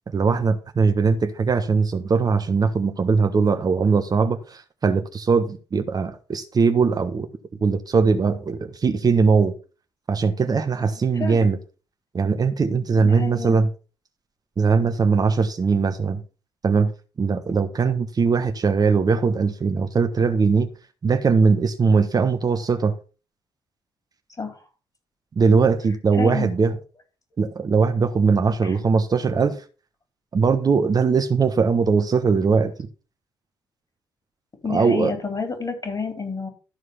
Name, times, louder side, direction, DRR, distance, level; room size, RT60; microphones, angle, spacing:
voice 1, 0.1-7.3 7.6-9.5 10.1-11.6 12.1-13.7 14.6-16.2 16.6-16.9 17.2-20.7 21.0-22.9 25.4-26.8 27.4-29.6 30.3-32.7 34.7-35.1, right 5 dB, 40° right, 1.2 m, -20 dB
voice 2, 10.9-11.5 13.0-13.6 24.4-24.6 26.1-26.5 28.6-28.8 34.6-36.5, left 5 dB, 35° left, 4.4 m, -30 dB
13.0 x 4.8 x 5.7 m
hypercardioid pair, 45°, 10 cm